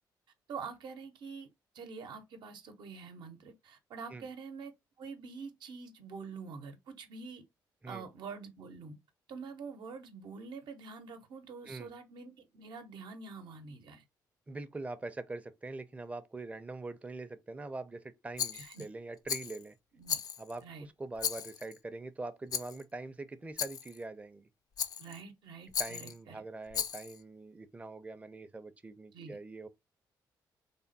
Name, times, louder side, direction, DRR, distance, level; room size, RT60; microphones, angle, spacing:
voice 1, 0.5-1.5 1.7-4.7 5.0-7.4 7.9-9.0 9.3-14.0 18.5-18.9 19.9-20.2 20.6-20.9 25.0-26.4 29.1-29.4, right 5 dB, 70° right, 0.8 m, -46 dB
voice 2, 14.5-19.8 20.4-24.5 25.8-29.7, right 2 dB, 15° right, 0.5 m, -43 dB
Rattle, 18.4-18.9 19.3-19.6 20.1-20.6 21.2-21.8 22.5-22.8 23.6-24.0 24.8-25.2 25.7-26.2 26.7-27.2, left 8 dB, 50° left, 0.4 m, -36 dB
3.4 x 2.1 x 4.0 m
cardioid pair, 80°, 8 cm